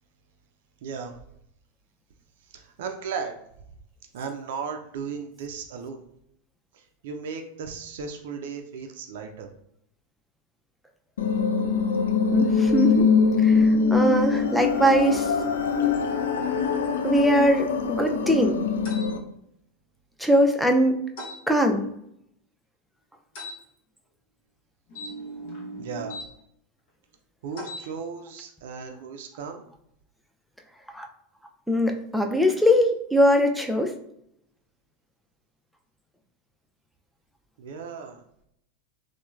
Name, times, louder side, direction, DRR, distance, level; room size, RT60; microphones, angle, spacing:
voice 1, 0.8-1.1 2.5-3.4 4.1-6.0 6.7-9.5 25.8-26.2 27.4-29.6 37.6-38.2, right 5 dB, 70° right, 5 dB, 0.3 m, -36 dB
sound 1, 11.2-19.2, left 5 dB, 80° left, 0.3 m, -23 dB
voice 2, 12.3-13.1 13.4-15.3 17.0-18.6 20.2-21.0 21.5-21.8 30.9-31.1 31.7-33.9, equal, ahead, 3 dB, 0.4 m, -21 dB
sound 2, 18.8-19.1 21.2-21.4 23.3-23.6 24.9-26.3 27.5-27.9, equal, 65° left, 0.8 m, -37 dB
2.9 x 2.1 x 2.3 m, 0.74 s
hypercardioid pair, 100°, 0 cm